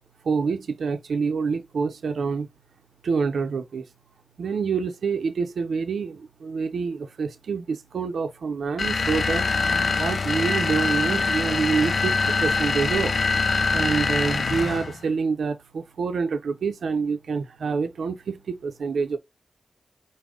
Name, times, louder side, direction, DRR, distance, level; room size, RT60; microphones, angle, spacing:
voice 1, 0.3-2.5 3.0-3.8 4.4-9.4 10.0-13.1 13.7-19.2, right 5 dB, 85° right, 0.6 m, -27 dB
sound 1, 8.8-15.0, left 4 dB, 65° left, 0.4 m, -24 dB
4.8 x 2.2 x 3.8 m
cardioid pair, 55°, 0 cm